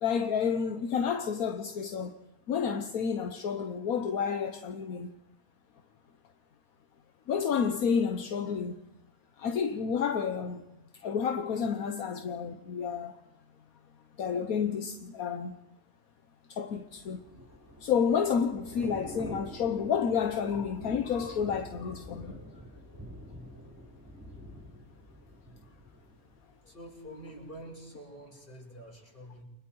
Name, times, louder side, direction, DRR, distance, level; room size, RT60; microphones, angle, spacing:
voice 1, 0.0-2.2 2.5-5.1 7.3-8.7 9.4-10.6 11.0-13.2 14.2-15.6 16.5-17.2 17.8-22.4, left 6 dB, 75° left, 1.5 m, -30 dB
Thunder / Rain, 16.9-26.9 27.2-27.5, equal, 15° right, 5.9 m, -47 dB
voice 2, 26.6-29.4, equal, 35° left, 6.8 m, -47 dB
30.0 x 24.5 x 4.7 m
omnidirectional pair, 1.5 m